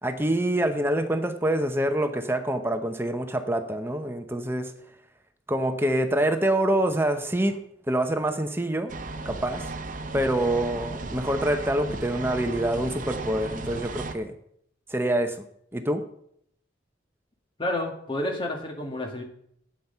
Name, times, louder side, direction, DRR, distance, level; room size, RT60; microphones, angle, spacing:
voice 1, 0.0-4.7 5.5-7.6 7.9-8.9 9.2-9.6 10.1-14.3 14.9-15.5 15.7-16.0, right 1 dB, 10° right, 7 dB, 0.8 m, -26 dB
sound 1, 8.9-14.1, right 3 dB, 45° right, 0.8 m, -35 dB
voice 2, 17.6-19.2, left 1 dB, 25° left, 2 dB, 2.0 m, -30 dB
11.5 x 8.9 x 5.7 m, 0.70 s
head